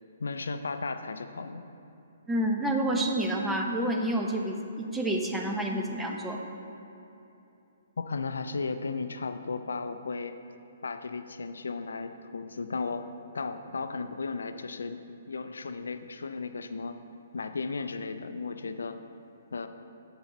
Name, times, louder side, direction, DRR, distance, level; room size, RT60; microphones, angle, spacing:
voice 1, 0.2-1.7 8.0-10.3 10.8-13.0 13.3-15.0 15.3-17.0 17.3-19.0 19.5-19.7, left 4 dB, 80° left, 9 dB, 0.4 m, -35 dB
voice 2, 2.3-6.4, right 1 dB, 5° right, 1 dB, 0.6 m, -29 dB
7.7 x 5.8 x 4.1 m, 2.8 s
hypercardioid pair, 135°, 0 cm